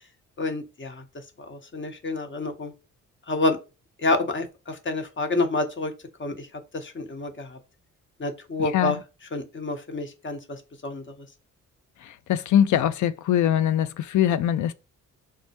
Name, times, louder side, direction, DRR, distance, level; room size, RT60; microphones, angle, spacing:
voice 1, 0.4-1.0 1.4-2.7 3.3-3.6 4.0-5.9 6.2-6.5 6.7-7.6 8.2-9.0 9.3-11.0, left 2 dB, 30° left, 0.8 m, -28 dB
voice 2, 8.6-9.0 12.3-14.7, left 10 dB, 50° left, 0.5 m, -22 dB
4.5 x 2.1 x 2.9 m
hypercardioid pair, 45°, 38 cm